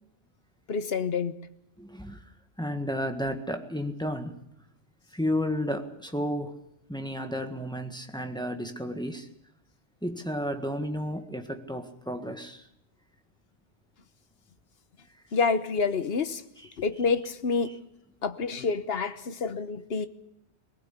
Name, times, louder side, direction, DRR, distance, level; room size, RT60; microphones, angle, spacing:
voice 1, 0.7-1.4 15.3-16.4 16.8-17.8 18.2-20.1, left 5 dB, 60° left, 1.3 m, -28 dB
voice 2, 1.8-2.2 2.6-4.4 5.1-6.6 6.9-9.3 10.0-12.7, equal, 5° left, 1.6 m, -32 dB
20.5 x 19.0 x 8.3 m
omnidirectional pair, 1.2 m